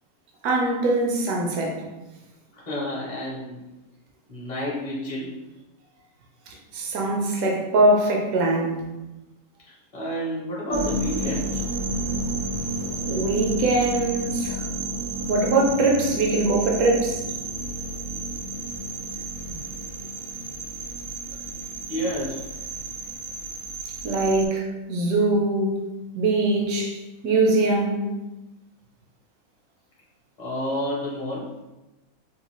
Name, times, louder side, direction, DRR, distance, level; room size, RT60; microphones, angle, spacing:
voice 1, 0.4-1.8 6.5-8.8 12.5-12.6 13.1-14.6 15.3-17.2 24.0-25.7 26.1-27.0 27.2-28.1, right 2 dB, 65° right, 1.1 m, -22 dB
voice 2, 2.5-3.6 4.3-5.3 9.9-11.6 21.9-22.4 30.4-31.5, equal, 35° left, 0.7 m, -29 dB
sound 1, 10.7-24.5, right 2 dB, 85° right, 0.7 m, -31 dB
3.9 x 2.4 x 3.0 m
omnidirectional pair, 1.9 m